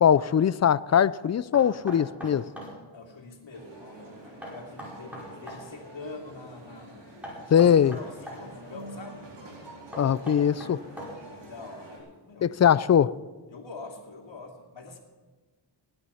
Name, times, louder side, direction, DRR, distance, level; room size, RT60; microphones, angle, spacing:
voice 1, 0.0-2.4 7.5-8.0 10.0-10.8 12.4-13.1, left 8 dB, 40° left, 18 dB, 0.4 m, -21 dB
Knock, 1.5-2.7 4.4-5.6 7.2-8.4 9.9-11.4, equal, 5° right, 5.1 m, -40 dB
voice 2, 2.9-7.0 7.3-9.3 11.3-12.5 13.5-15.0, left 3 dB, 80° left, 1 dB, 2.6 m, -45 dB
sound 1, 3.5-12.0, right 1 dB, 70° right, 4.3 m, -47 dB
16.5 x 11.0 x 5.6 m, 1.3 s
wide cardioid pair, 105°, 45 cm